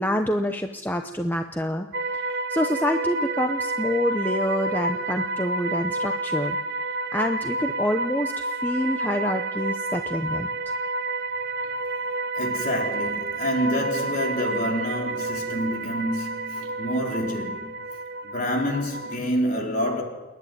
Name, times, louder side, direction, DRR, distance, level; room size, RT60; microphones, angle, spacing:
voice 1, 0.0-1.9 2.1-6.6 7.1-10.5, left 1 dB, 10° left, 0.7 m, -27 dB
sound 1, 1.9-19.2, right 2 dB, 50° right, 0.9 m, -29 dB
voice 2, 12.4-17.7 18.2-20.0, equal, 40° left, 4.1 m, -27 dB
28.5 x 11.0 x 9.4 m
head